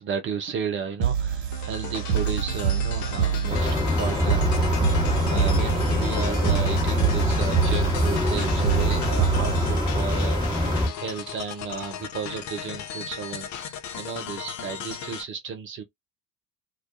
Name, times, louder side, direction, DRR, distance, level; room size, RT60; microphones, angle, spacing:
voice 1, 0.0-10.7 11.0-15.8, right 6 dB, 25° right, 0.4 m, -33 dB
sound 1, 1.0-10.0, right 8 dB, 45° right, 1.3 m, -27 dB
sound 2, 1.5-15.2, left 9 dB, 35° left, 0.6 m, -36 dB
sound 3, 3.5-10.9, left 1 dB, 10° left, 1.1 m, -24 dB
2.2 x 2.2 x 2.5 m
hypercardioid pair, 75°, 49 cm